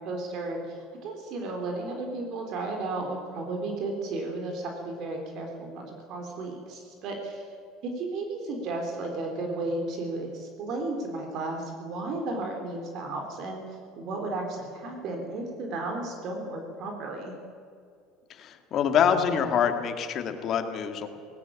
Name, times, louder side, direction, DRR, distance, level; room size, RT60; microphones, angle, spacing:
voice 1, 0.0-7.5 7.8-17.4, right 2 dB, 55° right, 2 dB, 3.6 m, -34 dB
voice 2, 18.3-21.1, left 8 dB, 45° left, 6 dB, 2.3 m, -25 dB
18.5 x 18.0 x 8.6 m, 2.4 s
supercardioid pair, 125°, 0 cm